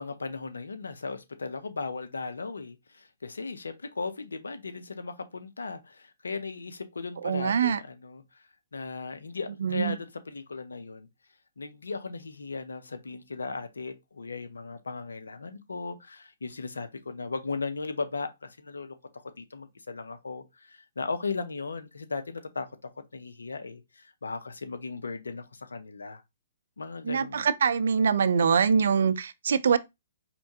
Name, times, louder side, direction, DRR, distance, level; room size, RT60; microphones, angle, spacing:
voice 1, 0.0-8.4 8.7-11.1 11.6-26.2 26.8-27.5, left 4 dB, 80° left, 0.6 m, -37 dB
voice 2, 7.2-7.8 9.6-10.0 27.0-29.8, right 6 dB, 65° right, 0.4 m, -24 dB
4.4 x 3.3 x 2.8 m
hypercardioid pair, 130°, 0 cm